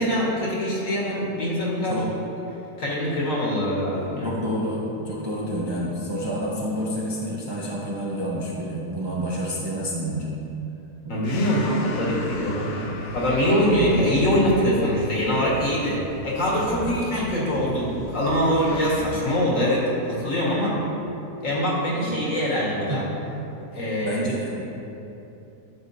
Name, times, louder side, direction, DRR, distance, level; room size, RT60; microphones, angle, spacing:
voice 1, 0.0-2.1 2.8-4.3 11.1-20.8 21.4-23.0 23.7-24.3, equal, 50° left, -5 dB, 1.9 m, -23 dB
voice 2, 4.2-10.3 11.0-11.2 16.7-16.9 20.7-20.9 21.9-22.2 22.9-23.1 24.0-24.6, equal, 25° right, -6 dB, 0.6 m, -29 dB
sound 1, 11.2-19.1, left 2 dB, 70° left, 1.2 m, -38 dB
11.5 x 5.8 x 2.7 m, 2.9 s
omnidirectional pair, 1.8 m